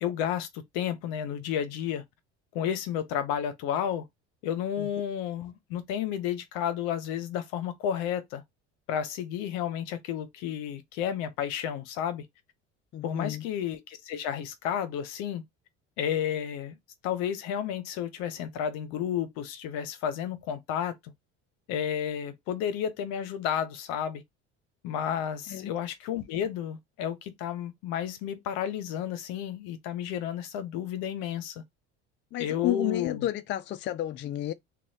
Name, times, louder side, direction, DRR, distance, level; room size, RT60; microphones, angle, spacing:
voice 1, 0.0-2.0 2.5-4.0 4.4-8.4 8.9-12.3 13.0-15.4 16.0-16.8 17.0-20.9 21.7-24.2 24.8-31.6 32.4-33.3, left 9 dB, 75° left, 0.8 m, -32 dB
voice 2, 12.9-13.4 25.5-25.7 32.3-34.5, left 14 dB, 35° left, 0.4 m, -31 dB
3.0 x 2.3 x 2.7 m
supercardioid pair, 80°, 33 cm